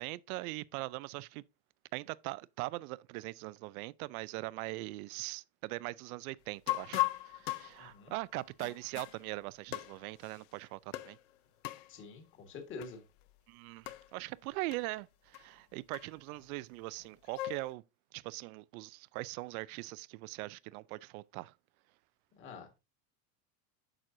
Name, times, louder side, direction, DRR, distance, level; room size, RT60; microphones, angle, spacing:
voice 1, 0.0-1.4 1.9-11.2 13.5-17.8 18.1-21.5, right 21 dB, 65° right, 0.5 m, -41 dB
sound 1, 6.7-9.2 9.7-10.4 10.9-11.2 11.6-11.9 12.8-13.0 13.2-13.3 13.9-14.1 14.7-14.8 15.3-15.4 15.9-16.4 17.0-17.7, left 19 dB, 50° left, 0.6 m, -37 dB
voice 2, 7.8-8.1 11.9-13.0 22.4-22.7, left 4 dB, 25° left, 1.6 m, -47 dB
9.0 x 6.3 x 2.6 m
supercardioid pair, 165°, 47 cm